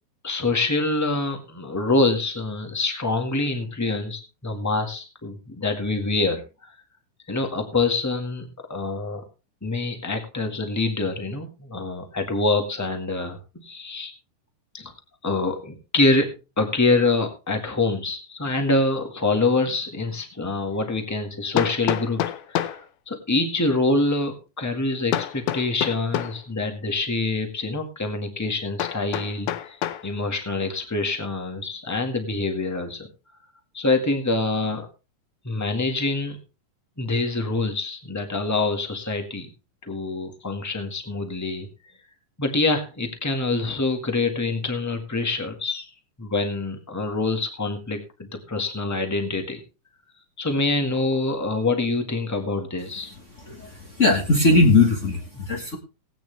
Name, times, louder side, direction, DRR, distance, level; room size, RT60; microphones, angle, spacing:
voice 1, 0.2-6.7 7.3-9.2 9.6-14.1 14.7-14.9 15.2-22.2 22.5-22.8 23.1-29.8 30.0-33.1 33.7-34.9 35.4-36.4 37.0-39.5 39.8-41.7 42.4-45.9 46.2-49.6 50.4-53.1, left 3 dB, 15° left, 6 dB, 0.6 m, -25 dB
Hammer, 20.0-20.1 21.6-22.9 25.1-26.4 28.8-30.1, left 12 dB, 80° left, 2.2 m, -28 dB
voice 2, 53.4-55.8, left 3 dB, 45° left, 3 dB, 1.0 m, -19 dB
18.5 x 9.1 x 3.4 m, 0.30 s
omnidirectional pair, 3.8 m